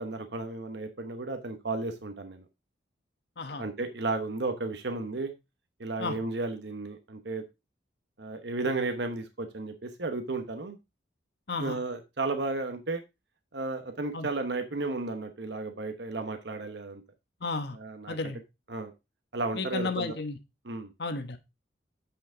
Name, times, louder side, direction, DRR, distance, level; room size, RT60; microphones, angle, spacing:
voice 1, 0.0-2.4 3.6-5.3 5.8-7.4 8.2-10.8 11.6-13.0 13.5-17.0 17.7-18.3 18.7-18.9 19.3-20.1 20.6-20.9, right 3 dB, 65° right, 7 dB, 1.0 m, -33 dB
voice 2, 17.4-17.8 18.1-18.4 19.5-20.4 21.0-21.4, left 3 dB, 60° left, 7 dB, 1.1 m, -33 dB
8.0 x 5.8 x 3.8 m, 0.24 s
head